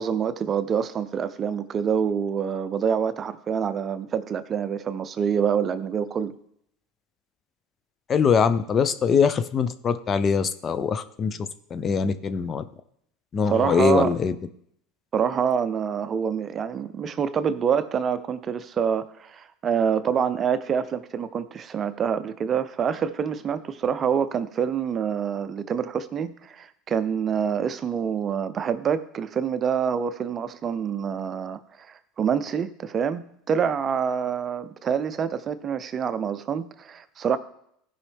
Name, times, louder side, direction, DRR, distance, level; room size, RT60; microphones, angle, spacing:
voice 1, 0.0-6.3 13.5-14.1 15.1-37.4, right 7 dB, 35° right, 13 dB, 0.6 m, -26 dB
voice 2, 8.1-12.6 13.3-14.3, left 6 dB, 35° left, 12 dB, 0.6 m, -23 dB
15.0 x 5.5 x 3.5 m, 0.70 s
supercardioid pair, 100°, 0 cm